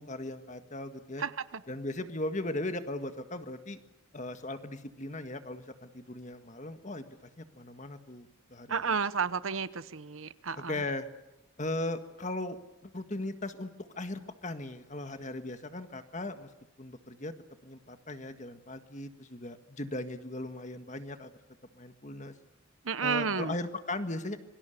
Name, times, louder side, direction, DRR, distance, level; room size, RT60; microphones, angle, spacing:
voice 1, 0.0-1.2 1.7-3.8 4.1-9.0 10.7-11.1 11.6-16.5 16.8-17.3 17.6-21.3 21.7-22.3 23.0-24.4, left 2 dB, 35° left, 8 dB, 1.7 m, -38 dB
voice 2, 1.2-1.6 8.7-10.8 22.8-23.5, right 5 dB, 75° right, 15 dB, 1.0 m, -32 dB
27.0 x 24.0 x 6.7 m, 0.95 s
head